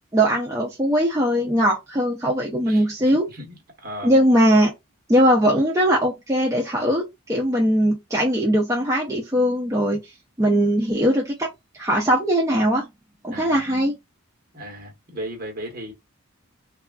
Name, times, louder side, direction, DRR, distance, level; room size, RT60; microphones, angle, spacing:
voice 1, 0.1-3.3 4.0-4.7 5.1-7.0 7.3-10.0 10.4-11.5 11.7-12.9 13.2-13.9, equal, 15° right, 0.5 m, -20 dB
voice 2, 2.7-4.1 13.3-13.6 14.5-15.9, right 1 dB, 40° right, 1.1 m, -36 dB
3.3 x 2.3 x 2.3 m
head